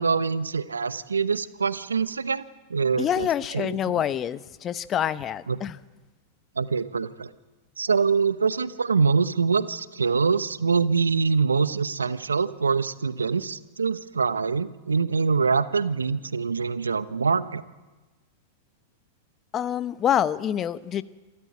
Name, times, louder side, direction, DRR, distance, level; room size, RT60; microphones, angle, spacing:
voice 1, 0.0-2.4 2.7-3.3 3.5-4.0 5.5-5.6 6.6-7.3 7.8-17.6, right 5 dB, 90° right, 15 dB, 0.9 m, -24 dB
voice 2, 3.0-5.8 19.5-21.0, left 10 dB, 30° left, 15 dB, 0.9 m, -26 dB
27.5 x 13.5 x 9.5 m, 1.2 s
hypercardioid pair, 100°, 0 cm